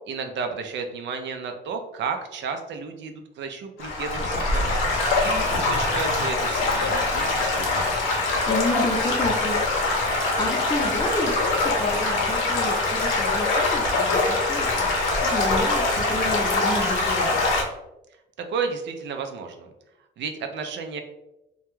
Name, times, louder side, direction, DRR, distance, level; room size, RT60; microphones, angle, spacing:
voice 1, 0.1-4.8 5.2-7.8 18.5-19.7 20.2-21.0, right 5 dB, 65° right, 5 dB, 0.4 m, -32 dB
Stream / Gurgling / Trickle dribble, 3.8-17.6, left 2 dB, 85° left, 0.7 m, -23 dB
voice 2, 8.5-9.6 10.4-17.4, left 1 dB, 20° left, 2 dB, 0.5 m, -30 dB
2.2 x 2.2 x 3.0 m, 0.91 s
cardioid pair, 90°, 20 cm